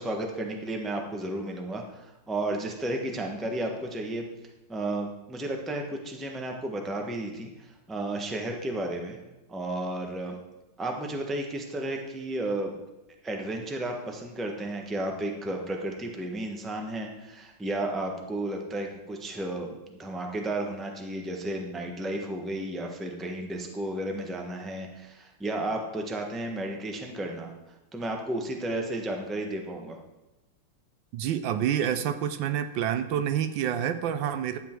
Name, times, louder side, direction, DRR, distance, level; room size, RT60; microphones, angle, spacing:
voice 1, 0.0-4.3 4.7-9.2 9.5-10.4 10.8-12.8 13.2-30.0, right 1 dB, ahead, 2 dB, 0.8 m, -33 dB
voice 2, 31.1-34.6, right 9 dB, 75° right, 10 dB, 1.3 m, -28 dB
12.0 x 8.1 x 4.5 m, 1.0 s
omnidirectional pair, 2.2 m